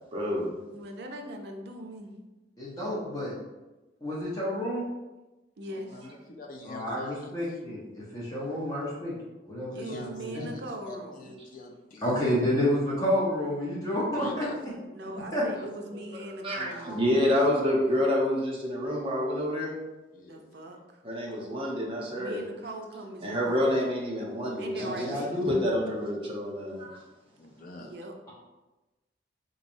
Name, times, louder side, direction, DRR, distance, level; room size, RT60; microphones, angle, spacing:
voice 1, 0.1-0.6 16.4-19.7 21.0-22.4 23.2-25.1 25.5-27.0, left 1 dB, 30° right, -3 dB, 0.8 m, -28 dB
voice 2, 0.7-2.2 5.6-6.1 9.7-11.4 14.9-17.2 20.3-21.0 22.2-23.7 24.6-25.3 27.8-28.1, right 1 dB, 60° right, 3 dB, 0.5 m, -41 dB
voice 3, 2.6-3.4 4.0-4.9 6.7-9.1 9.5-10.5 12.0-14.4 15.3-15.4 24.7-25.5, left 1 dB, 20° left, -6 dB, 0.9 m, -29 dB
voice 4, 5.7-7.6 9.7-12.1 14.1-14.6 15.5-17.4 20.1-20.4 27.4-27.9, left 2 dB, 50° left, 1 dB, 0.6 m, -46 dB
3.9 x 3.1 x 2.6 m, 1.1 s
head